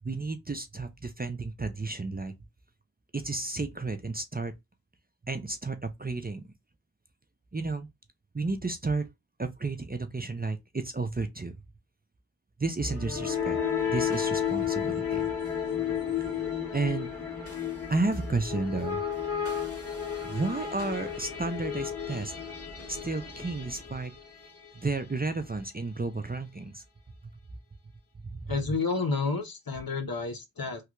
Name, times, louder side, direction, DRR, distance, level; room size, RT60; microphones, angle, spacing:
voice 1, 0.0-2.3 3.1-4.5 5.3-6.4 7.5-7.9 8.3-9.1 9.4-11.5 12.6-13.6 13.8-15.3 16.7-17.1 17.9-19.0 20.2-22.3 22.9-24.1 24.7-26.8 28.2-28.5, right 3 dB, 25° right, 0.5 m, -32 dB
sound 1, 12.8-24.7, left 8 dB, 35° left, 1.7 m, -32 dB
voice 2, 28.5-30.8, left 4 dB, 60° left, 0.9 m, -30 dB
3.2 x 2.4 x 2.9 m
wide cardioid pair, 50°, 41 cm